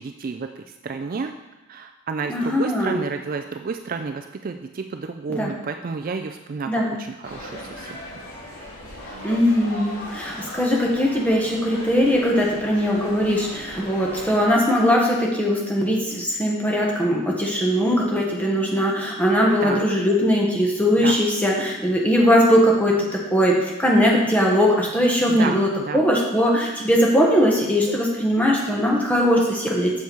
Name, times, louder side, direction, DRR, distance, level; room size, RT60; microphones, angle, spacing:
voice 1, 0.0-1.3 1.7-6.7 7.0-8.0 19.6-19.8 21.0-21.2 25.3-26.0, right 4 dB, 40° right, 6 dB, 0.3 m, -31 dB
voice 2, 2.3-3.0 5.3-5.5 6.7-6.9 9.2-29.9, equal, 5° left, -2 dB, 1.2 m, -20 dB
sound 1, 7.2-14.5, left 1 dB, 80° left, 2.8 m, -38 dB
7.1 x 6.5 x 4.6 m, 1.1 s
head